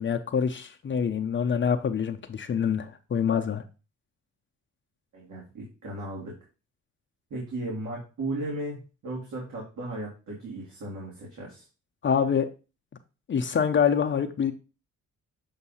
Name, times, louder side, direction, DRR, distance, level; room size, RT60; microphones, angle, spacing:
voice 1, 0.0-3.6 12.0-12.5 13.3-14.5, left 7 dB, 35° left, 5 dB, 0.6 m, -25 dB
voice 2, 5.1-6.4 7.3-11.6, right 2 dB, 70° right, -4 dB, 2.3 m, -36 dB
7.1 x 2.7 x 5.5 m, 0.32 s
cardioid pair, 105°, 32 cm